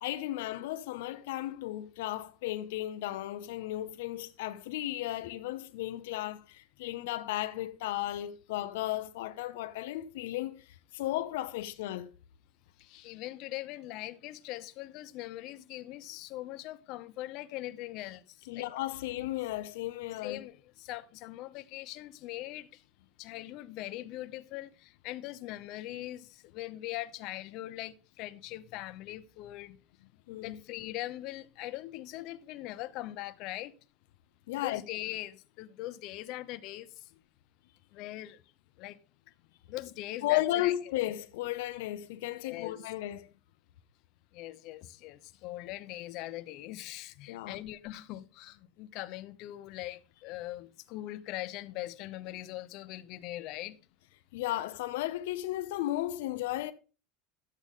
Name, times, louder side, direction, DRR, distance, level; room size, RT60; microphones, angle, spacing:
voice 1, 0.0-10.7 10.9-12.1 18.5-20.4 30.3-30.6 34.5-34.8 40.2-43.3 47.3-47.6 54.3-56.7, left 15 dB, 85° left, 0.8 m, -34 dB
voice 2, 12.8-18.7 20.2-22.8 23.2-29.8 30.4-33.7 34.6-37.1 37.9-38.4 38.8-39.0 39.7-40.7 42.4-42.8 44.3-53.8, left 16 dB, 55° left, 0.8 m, -41 dB
12.0 x 8.3 x 3.7 m
supercardioid pair, 130°, 0 cm